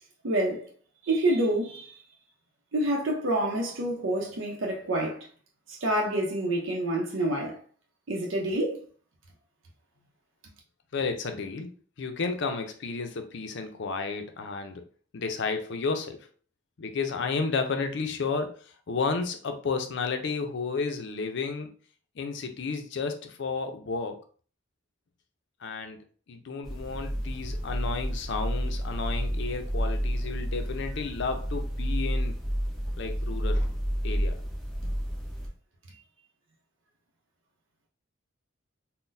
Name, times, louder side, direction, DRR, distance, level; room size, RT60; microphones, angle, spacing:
voice 1, 0.2-0.7 1.0-2.0 2.7-5.3 5.7-7.6 8.1-8.8, right 1 dB, 90° right, 0.6 m, -27 dB
voice 2, 10.9-14.8 15.1-16.3 16.8-21.7 22.2-24.2 25.6-26.0 26.3-32.4 33.0-33.7 34.0-34.4, left 4 dB, 65° left, 0.5 m, -32 dB
sound 1, 26.6-35.5, equal, ahead, 0.8 m, -30 dB
3.8 x 2.1 x 2.6 m
head